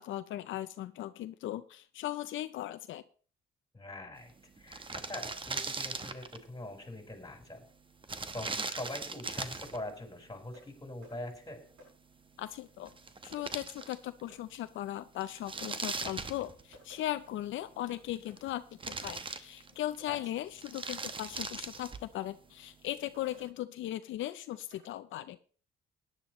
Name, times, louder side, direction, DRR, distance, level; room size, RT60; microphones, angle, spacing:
voice 1, 0.0-3.0 12.4-12.9 13.2-25.4, left 13 dB, 75° left, 11 dB, 0.5 m, -38 dB
voice 2, 3.7-4.3 4.6-7.6 8.3-11.6 20.1-20.2, left 1 dB, 20° left, 3 dB, 4.4 m, -43 dB
sound 1, 4.3-4.4 4.6-6.5 8.0-9.8 12.5-12.6 12.9-14.2 14.5-14.6 15.2-17.0 17.9-18.5 18.8-20.0 20.5-22.1, right 4 dB, 25° right, 1.0 m, -39 dB
sound 2, 10.5-10.7 11.0-11.2 11.8-11.9 13.4-13.5 13.8-13.9 14.3-14.4 15.8-15.9 16.4-17.1 17.8-18.0 18.3-18.4 20.0-20.1 21.7-21.9 23.1-23.5 24.5-25.0, left 1 dB, 80° right, 7.3 m, -57 dB
17.0 x 10.5 x 3.1 m, 0.41 s
cardioid pair, 90°, 20 cm